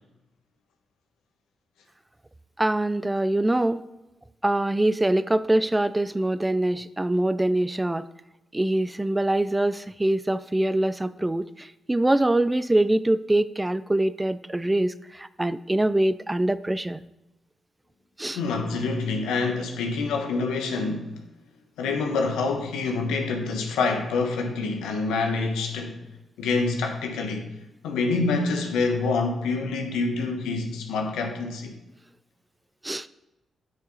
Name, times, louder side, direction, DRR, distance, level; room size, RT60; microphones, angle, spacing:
voice 1, 2.6-3.8 4.4-8.1 8.5-17.0 18.2-18.4 32.8-33.1, right 1 dB, 20° right, 0.5 m, -24 dB
voice 2, 18.3-21.1 21.8-26.0 26.4-27.5 27.8-31.7, left 3 dB, 80° left, 1.2 m, -26 dB
9.6 x 6.5 x 4.1 m
hypercardioid pair, 40°, 0 cm